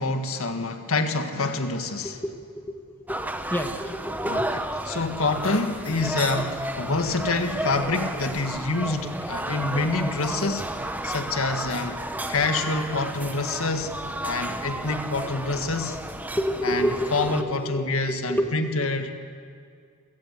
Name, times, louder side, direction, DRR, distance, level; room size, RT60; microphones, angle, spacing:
voice 1, 0.0-2.2 4.3-4.4 4.9-10.7 11.0-12.0 12.3-13.9 14.2-16.0 16.6-19.1, left 3 dB, 70° left, 6 dB, 1.8 m, -27 dB
voice 2, 2.0-3.2 3.5-4.7 9.8-10.7 11.7-11.8 12.1-12.3 16.4-19.1, equal, 10° left, 4 dB, 1.5 m, -31 dB
sound 1, 3.1-17.4, right 1 dB, 10° right, 0.8 m, -32 dB
29.0 x 17.0 x 8.4 m, 2.3 s
head